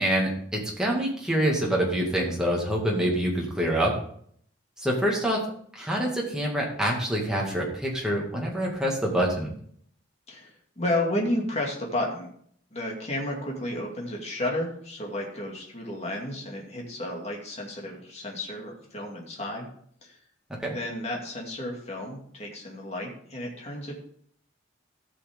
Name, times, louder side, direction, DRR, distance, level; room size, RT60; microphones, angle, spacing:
voice 1, 0.0-3.9 4.8-5.4 5.7-9.5 20.6-20.8, equal, 5° right, -3 dB, 2.2 m, -26 dB
voice 2, 10.3-12.3 12.7-19.7 20.0-20.2 20.7-23.9, left 1 dB, 30° left, -1 dB, 2.3 m, -32 dB
14.5 x 6.1 x 3.7 m, 0.62 s
head